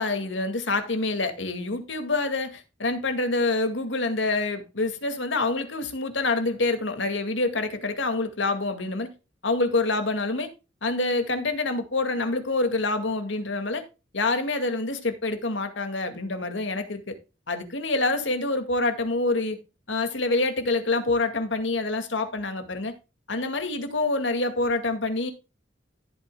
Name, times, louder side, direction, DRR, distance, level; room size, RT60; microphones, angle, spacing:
voice 1, 0.0-9.1 9.4-10.5 10.8-13.8 14.1-17.1 17.5-19.6 19.9-22.9 23.3-25.3, left 2 dB, 80° left, 2.1 m, -26 dB
14.5 x 8.6 x 2.3 m
head